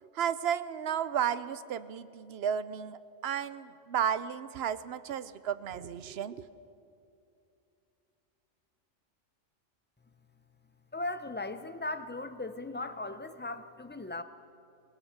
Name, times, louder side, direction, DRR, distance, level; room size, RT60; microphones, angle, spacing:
voice 1, 0.0-6.5, right 8 dB, 60° right, 15 dB, 0.8 m, -33 dB
voice 2, 10.9-14.2, left 2 dB, 15° left, 11 dB, 0.3 m, -37 dB
21.0 x 18.0 x 7.2 m, 2.6 s
omnidirectional pair, 1.3 m